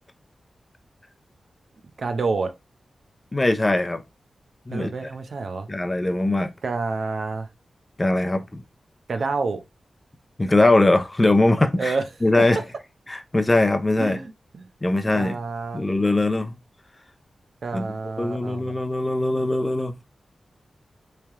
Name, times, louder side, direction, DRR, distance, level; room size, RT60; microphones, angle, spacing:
voice 1, 2.0-2.5 4.7-5.7 6.6-7.5 9.1-9.6 11.8-12.0 14.0-14.7 15.1-15.9 17.6-18.7, right 4 dB, 70° right, 0.6 m, -28 dB
voice 2, 3.3-4.0 4.7-4.9 5.7-6.5 8.0-8.6 10.4-11.9 12.2-12.6 13.1-14.2 14.8-15.4 15.7-16.5 17.7-17.8 18.2-19.9, left 2 dB, 25° left, 0.5 m, -21 dB
3.3 x 2.7 x 3.5 m
cardioid pair, 75°, 0 cm